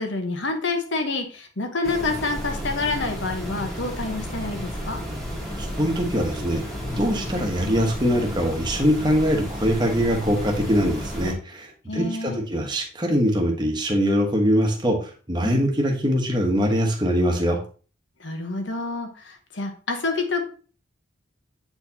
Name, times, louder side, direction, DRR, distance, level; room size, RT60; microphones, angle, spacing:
voice 1, 0.0-5.0 11.9-12.4 15.4-15.6 18.2-20.4, left 3 dB, 70° left, 4 dB, 1.2 m, -28 dB
sound 1, 1.8-11.3, equal, ahead, 1.5 m, -32 dB
voice 2, 5.6-6.6 6.9-17.6, equal, 20° right, 2 dB, 1.1 m, -23 dB
8.0 x 4.3 x 2.8 m, 0.39 s
head